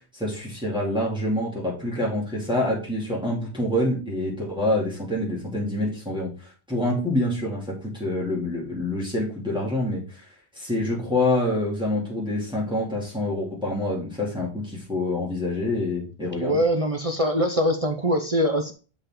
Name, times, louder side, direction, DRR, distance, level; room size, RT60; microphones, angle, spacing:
voice 1, 0.1-10.2 10.5-16.6, left 1 dB, 5° right, -5 dB, 2.6 m, -26 dB
voice 2, 16.4-18.7, equal, 40° right, 6 dB, 0.6 m, -23 dB
6.8 x 5.6 x 3.7 m, 0.35 s
omnidirectional pair, 1.1 m